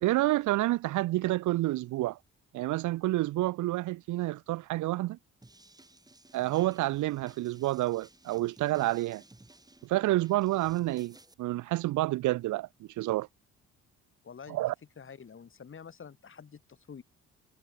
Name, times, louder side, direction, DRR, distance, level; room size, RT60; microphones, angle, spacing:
voice 1, 0.0-2.2 2.5-5.2 6.3-9.2 9.8-12.7 13.0-13.3 14.5-14.7, right 17 dB, 75° right, 0.6 m, -29 dB
sound 1, 5.4-11.3, right 2 dB, 15° right, 4.2 m, -57 dB
voice 2, 14.2-14.6 15.0-17.0, left 6 dB, 40° left, 3.9 m, -48 dB
cardioid pair, 90°, 30 cm